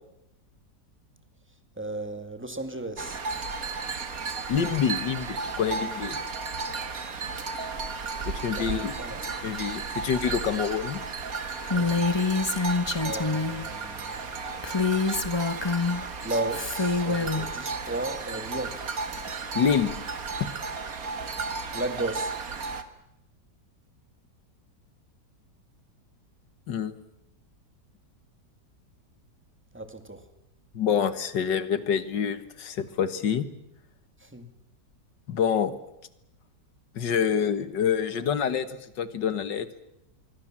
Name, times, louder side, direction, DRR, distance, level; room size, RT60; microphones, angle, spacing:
voice 1, 1.8-3.2 8.6-9.2 11.7-12.1 13.0-14.2 16.2-18.8 21.7-22.4 29.7-30.2 34.2-34.5, right 2 dB, 5° right, 8 dB, 2.2 m, -34 dB
sound 1, 3.0-22.8, right 4 dB, 55° right, 2.1 m, -34 dB
voice 2, 4.5-6.2 8.3-9.0 9.4-11.0 19.6-19.9 20.4-20.5 26.7-26.9 30.7-33.5 35.3-35.8 37.0-39.7, left 7 dB, 90° left, 13 dB, 2.1 m, -27 dB
Female speech woman speaking, 11.7-13.6 14.6-16.0 16.5-17.5, left 4 dB, 15° left, 1.3 m, -26 dB
25.5 x 24.0 x 7.5 m, 0.86 s
omnidirectional pair, 1.9 m